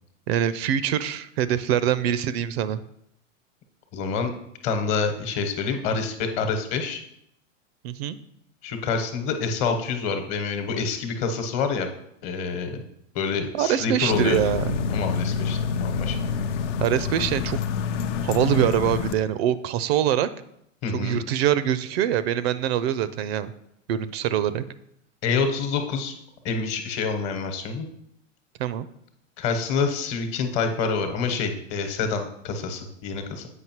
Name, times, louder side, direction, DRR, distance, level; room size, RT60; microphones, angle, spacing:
voice 1, 0.3-2.8 7.8-8.2 13.5-14.8 16.8-17.6 18.2-20.3 20.9-23.5 23.9-24.6 28.6-28.9, right 10 dB, 55° right, 15 dB, 0.4 m, -24 dB
voice 2, 3.9-4.3 4.6-7.0 8.6-11.9 12.2-12.8 13.1-14.4 14.9-16.2 20.8-21.2 25.2-26.1 26.4-27.9 29.4-33.5, left 5 dB, 45° left, 6 dB, 1.1 m, -27 dB
sound 1, 14.1-19.1, left 6 dB, 65° left, 0.6 m, -27 dB
8.1 x 5.2 x 3.0 m, 0.75 s
hypercardioid pair, 105°, 39 cm